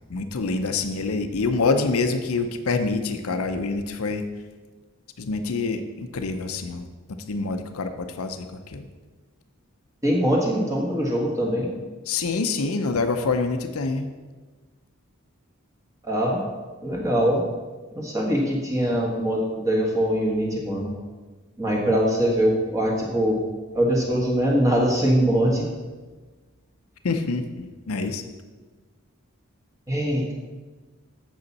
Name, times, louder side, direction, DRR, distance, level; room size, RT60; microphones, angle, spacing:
voice 1, 0.1-4.2 5.2-6.8 7.3-8.9 12.1-14.1 27.0-28.2, left 3 dB, 80° left, 7 dB, 0.6 m, -26 dB
voice 2, 10.0-11.7 16.0-16.4 16.8-17.5 18.0-20.9 21.6-23.4 23.7-25.7 29.9-30.3, equal, 15° right, -2 dB, 1.5 m, -22 dB
7.9 x 7.2 x 4.1 m, 1.3 s
head